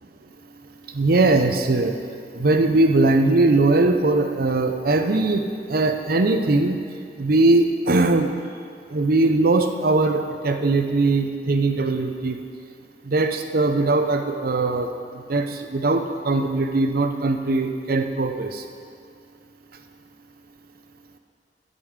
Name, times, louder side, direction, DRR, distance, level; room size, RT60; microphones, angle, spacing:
voice 1, 0.9-2.0 2.3-5.4 5.7-6.8 7.2-8.3 8.9-12.4 13.1-14.9 15.3-18.6, right 2 dB, 55° right, 6 dB, 0.7 m, -20 dB
9.9 x 5.4 x 8.0 m, 2.3 s
head